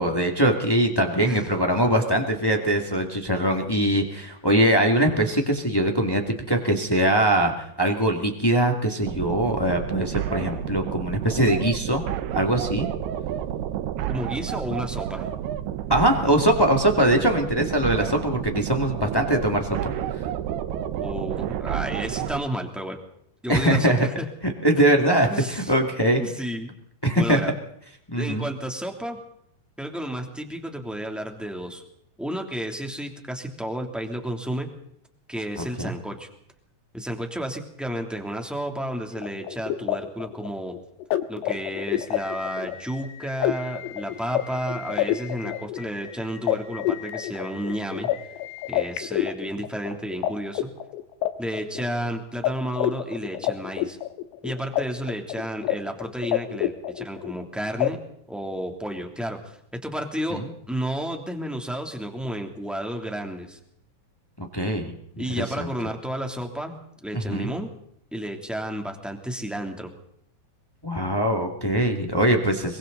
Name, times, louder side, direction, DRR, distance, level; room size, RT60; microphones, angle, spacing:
voice 1, 0.0-12.0 12.3-12.9 15.9-19.9 23.5-24.1 24.4-26.2 27.0-27.4 28.1-28.5 35.6-35.9 60.3-60.4 64.4-65.7 67.1-67.5 70.8-72.8, right 1 dB, 25° left, 3 dB, 0.4 m, -22 dB
sound 1, 9.0-22.4, right 11 dB, 70° right, 2.8 m, -30 dB
voice 2, 14.1-15.3 20.9-23.0 23.4-24.2 25.3-25.7 26.2-26.7 27.1-27.5 28.1-29.2 29.8-31.8 32.2-34.7 35.3-36.3 36.9-40.7 41.3-48.1 48.7-50.7 51.4-54.0 54.4-58.0 58.3-63.6 65.2-66.7 67.0-67.7 68.1-69.9, equal, ahead, 2 dB, 1.6 m, -31 dB
sound 2, 39.1-50.3 50.6-52.1 52.4-52.5 52.8-54.8 55.1-55.7 56.0-57.4 57.8-57.9, left 13 dB, 70° left, 3.2 m, -28 dB
26.5 x 24.0 x 4.0 m, 0.71 s
omnidirectional pair, 5.3 m